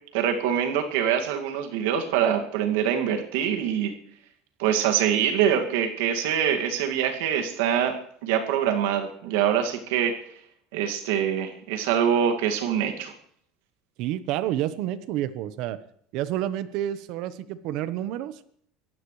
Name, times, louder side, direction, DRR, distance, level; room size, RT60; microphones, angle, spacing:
voice 1, 0.1-3.9 4.6-10.2 10.7-13.1, right 9 dB, 85° right, 4 dB, 2.2 m, -24 dB
voice 2, 14.0-15.8 16.1-18.4, right 12 dB, 65° right, 14 dB, 1.1 m, -29 dB
28.0 x 15.5 x 3.3 m, 0.65 s
supercardioid pair, 130°, 0 cm